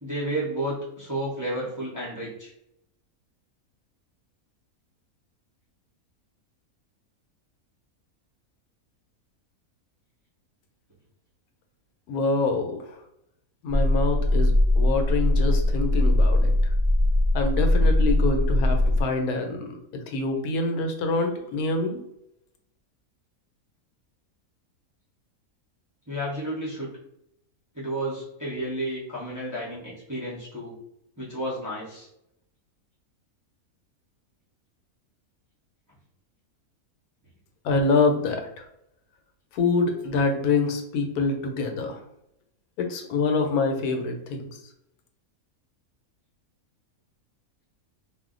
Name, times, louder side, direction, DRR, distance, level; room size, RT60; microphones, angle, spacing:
voice 1, 0.0-2.5 26.1-26.9 27.7-30.8 31.2-32.1, right 1 dB, 20° right, -7 dB, 0.5 m, -31 dB
voice 2, 12.1-12.9 13.6-16.5 17.3-22.0 37.6-38.7 39.5-42.0 42.8-44.5, left 3 dB, 85° left, 4 dB, 1.1 m, -26 dB
sound 1, 13.7-19.0, left 1 dB, 35° left, 0.6 m, -21 dB
2.5 x 2.1 x 3.7 m, 0.80 s
omnidirectional pair, 1.5 m